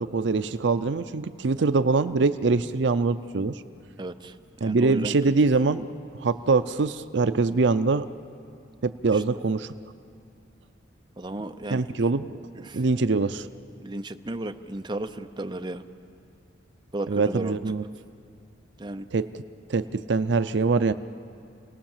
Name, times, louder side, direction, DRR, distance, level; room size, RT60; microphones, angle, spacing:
voice 1, 0.0-3.6 4.6-5.9 6.2-8.1 8.8-9.7 11.7-12.3 12.7-13.5 17.1-17.8 19.1-19.4 19.7-20.9, right 3 dB, 70° right, 12 dB, 0.5 m, -23 dB
voice 2, 4.0-4.3 4.6-5.1 9.1-9.2 11.2-11.8 12.7-12.8 13.8-15.8 16.9-17.6 18.8-19.1, right 1 dB, 25° right, 6 dB, 0.7 m, -34 dB
28.5 x 19.0 x 7.4 m, 2.5 s
head